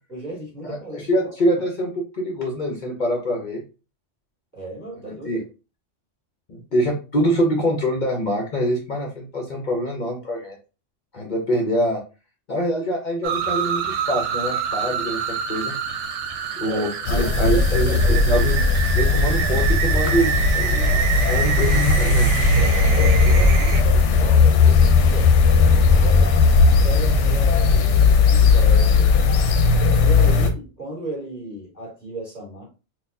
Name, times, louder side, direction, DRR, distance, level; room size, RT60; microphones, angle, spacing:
voice 1, 0.1-1.3 4.5-5.4 6.7-6.8 16.6-16.9 17.1-18.4 22.9-25.3 25.6-29.3 30.0-32.6, right 2 dB, 15° left, -5 dB, 1.9 m, -35 dB
voice 2, 0.6-3.6 5.0-5.4 6.5-10.6 11.1-12.0 12.5-15.8 16.6-18.6 18.9-22.5, equal, 45° left, 1 dB, 0.7 m, -25 dB
sound 1, 13.2-23.8, right 7 dB, 75° right, 0.9 m, -27 dB
sound 2, 17.1-30.5, left 4 dB, 75° left, 0.9 m, -17 dB
4.1 x 2.3 x 2.6 m, 0.32 s
omnidirectional pair, 1.2 m